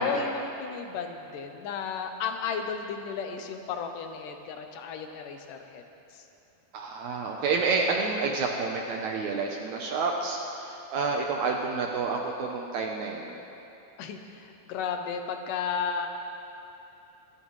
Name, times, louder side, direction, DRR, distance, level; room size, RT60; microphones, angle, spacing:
voice 1, 0.0-5.8 6.1-6.3 14.0-16.1, left 6 dB, 75° left, 5 dB, 2.2 m, -34 dB
voice 2, 6.7-13.4, right 4 dB, 75° right, 1 dB, 1.8 m, -29 dB
25.5 x 12.0 x 3.1 m, 2.9 s
omnidirectional pair, 4.1 m